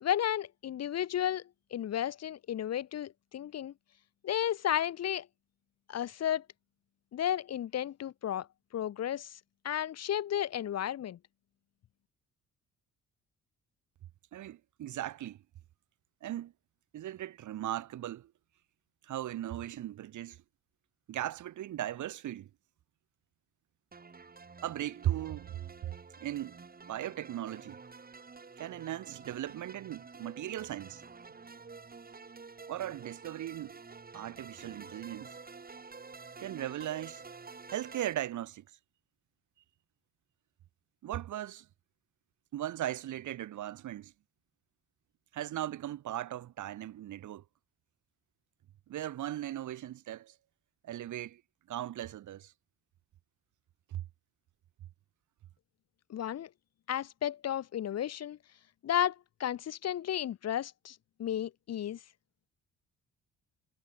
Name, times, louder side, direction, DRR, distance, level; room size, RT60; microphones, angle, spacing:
voice 1, 0.0-1.4 1.7-3.7 4.2-5.3 5.9-6.4 7.1-8.5 8.7-9.4 9.6-11.2 56.1-56.5 56.9-58.4 58.8-62.0, left 10 dB, 55° left, 1.1 m, -33 dB
voice 2, 14.3-15.4 16.2-16.5 16.9-18.3 19.1-20.4 21.1-22.5 24.6-25.6 26.2-27.8 28.6-31.0 32.7-33.8 34.1-35.4 36.4-37.2 37.7-38.6 41.0-41.7 42.5-44.1 45.3-47.4 48.9-50.3 50.8-51.4 51.7-52.5 53.9-54.0, right 12 dB, 75° right, 4.0 m, -38 dB
sound 1, 23.9-38.1, right 4 dB, 30° right, 4.3 m, -50 dB
cardioid pair, 90°, 30 cm